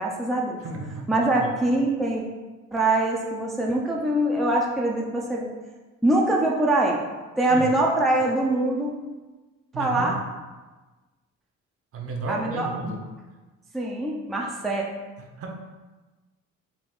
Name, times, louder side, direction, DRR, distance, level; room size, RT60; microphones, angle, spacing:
voice 1, 0.0-0.6 1.1-2.2 2.7-5.5 6.0-7.0 7.4-8.9 9.8-10.2 12.3-12.7 13.7-14.8, right 2 dB, ahead, -2 dB, 0.4 m, -23 dB
voice 2, 0.6-1.5 7.5-7.7 9.7-10.2 11.9-13.0 15.3-15.5, right 3 dB, 50° right, 1 dB, 0.7 m, -33 dB
3.6 x 2.3 x 3.7 m, 1.2 s
cardioid pair, 90°, 30 cm